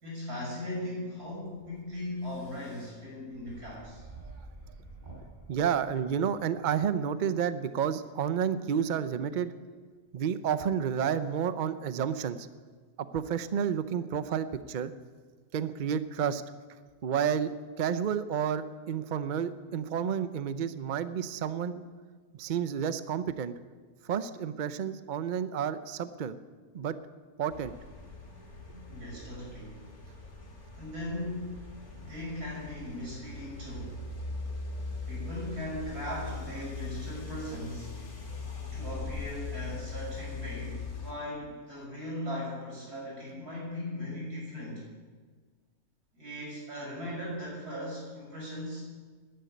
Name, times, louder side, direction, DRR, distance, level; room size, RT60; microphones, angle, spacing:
voice 1, 0.0-4.0 28.7-29.9 30.7-31.6 31.9-34.0 35.1-37.9 38.7-44.9 46.1-48.8, left 1 dB, 85° right, -4 dB, 6.5 m, -38 dB
sound 1, 1.2-6.4, right 2 dB, 30° right, 4.9 m, -50 dB
voice 2, 5.5-9.5 10.1-12.5 13.0-14.9 15.5-16.4 17.0-21.8 22.3-23.5 24.0-26.4 26.7-27.0 27.4-27.7, right 8 dB, 55° right, 13 dB, 0.5 m, -30 dB
sound 2, 27.5-41.1, left 3 dB, 75° left, 3.1 m, -41 dB
11.0 x 10.5 x 9.5 m, 1.5 s
omnidirectional pair, 1.6 m